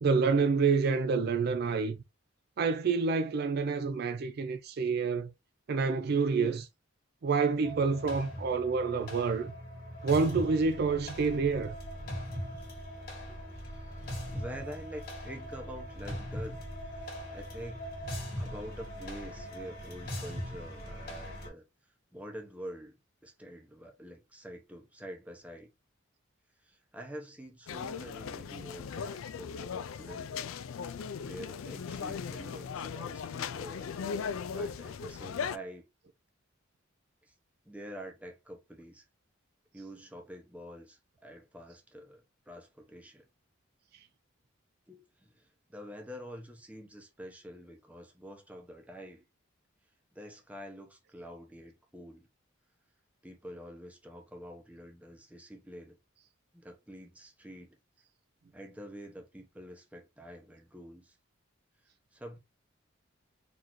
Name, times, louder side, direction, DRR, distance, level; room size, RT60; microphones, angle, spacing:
voice 1, 0.0-2.0 2.6-5.3 5.7-6.7 7.2-9.5 10.0-11.7, right 4 dB, 50° right, 0.3 m, -28 dB
sound 1, 7.6-21.5, equal, 50° left, 1.8 m, -40 dB
voice 2, 13.3-16.6 17.3-17.9 18.4-21.6 22.1-23.0 23.2-25.7 26.6-30.5 31.3-33.9 34.5-35.8 37.2-37.3 37.6-39.0 39.7-43.2 44.9-49.2 50.1-52.3 53.2-56.0 56.5-57.8 58.5-61.1 62.1-62.4, equal, 5° right, 0.8 m, -47 dB
sound 2, 27.7-35.6, left 6 dB, 85° left, 0.4 m, -38 dB
4.1 x 2.7 x 3.0 m
head